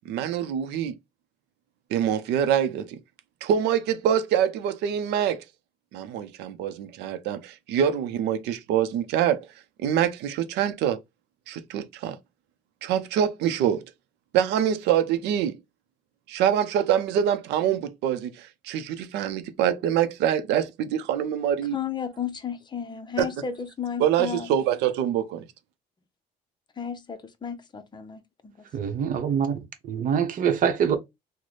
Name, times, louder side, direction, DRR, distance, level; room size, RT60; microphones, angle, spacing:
voice 1, 0.1-1.0 1.9-3.0 3.4-5.4 5.9-9.5 9.8-11.0 11.5-12.2 12.8-13.8 14.3-15.6 16.3-21.8 23.2-23.3 24.0-25.5, right 9 dB, 85° right, 0.6 m, -25 dB
voice 2, 21.7-24.5 26.8-28.7, left 7 dB, 25° left, 0.6 m, -33 dB
voice 3, 28.7-31.0, right 7 dB, 55° right, 0.8 m, -25 dB
3.1 x 2.1 x 3.9 m
cardioid pair, 110°, 17 cm